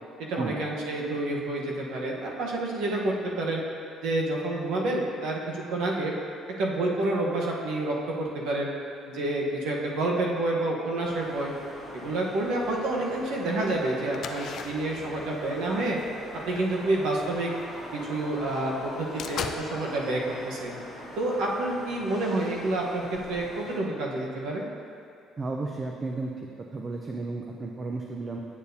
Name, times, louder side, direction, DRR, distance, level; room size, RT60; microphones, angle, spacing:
voice 1, 0.3-3.6 4.0-6.1 6.6-8.7 9.1-11.5 11.9-16.0 16.4-17.5 17.9-20.7 21.2-24.6, right 2 dB, 80° right, -2 dB, 1.0 m, -28 dB
sound 1, 11.0-23.8, equal, 5° left, 1.7 m, -42 dB
sound 2, 14.1-17.9 18.4-18.5 18.8-19.6, left 7 dB, 55° left, 0.4 m, -39 dB
voice 2, 25.4-26.3 26.7-28.4, right 3 dB, 30° right, 1 dB, 0.4 m, -33 dB
8.5 x 6.6 x 2.7 m, 2.4 s
cardioid pair, 135°, 0 cm